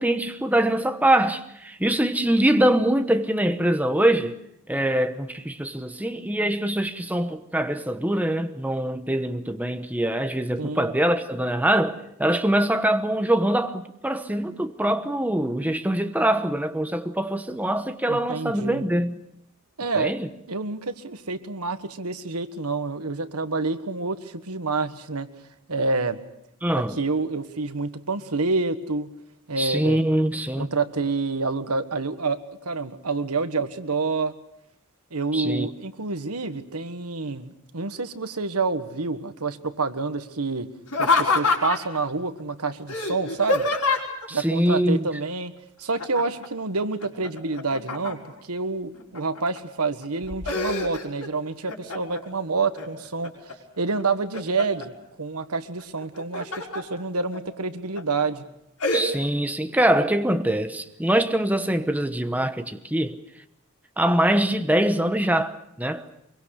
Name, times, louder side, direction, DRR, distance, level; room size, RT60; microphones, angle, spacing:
voice 1, 0.0-4.3 4.7-19.2 20.0-20.3 26.6-27.0 29.6-30.7 35.3-35.7 44.3-45.0 58.9-63.2 64.0-66.1, right 1 dB, 5° right, 1.0 m, -23 dB
voice 2, 10.6-10.9 18.1-18.8 19.8-20.1 20.5-25.3 25.7-26.2 27.0-29.1 29.5-30.0 30.6-34.3 35.1-40.7 41.0-43.7 44.3-45.5 45.8-53.3 53.8-54.9 55.2-58.4, right 3 dB, 90° right, 1.5 m, -28 dB
Laughter, 40.9-42.0 42.9-44.3 46.0-46.5 46.8-48.4 48.9-49.6 50.0-51.3 51.7-52.3 52.8-53.5 54.0-54.9 56.0-56.8 57.3-57.4 58.0-58.2 58.8-59.0, left 3 dB, 90° left, 5.2 m, -26 dB
24.5 x 23.0 x 6.6 m
head